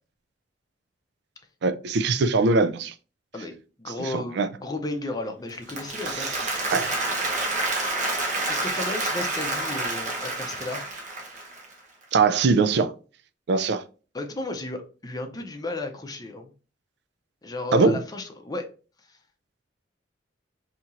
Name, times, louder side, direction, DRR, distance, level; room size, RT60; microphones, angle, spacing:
voice 1, 1.6-2.9 4.1-4.5 6.7-6.9 12.1-12.9 13.5-13.8 17.7-18.0, right 4 dB, 65° right, 0.4 m, -21 dB
voice 2, 3.3-6.4 8.4-10.9 14.1-16.5 17.4-18.7 19.1-19.2, left 2 dB, 20° left, 0.6 m, -34 dB
Applause, 5.5-11.7, right 2 dB, 40° right, 0.9 m, -28 dB
4.3 x 2.8 x 2.4 m
head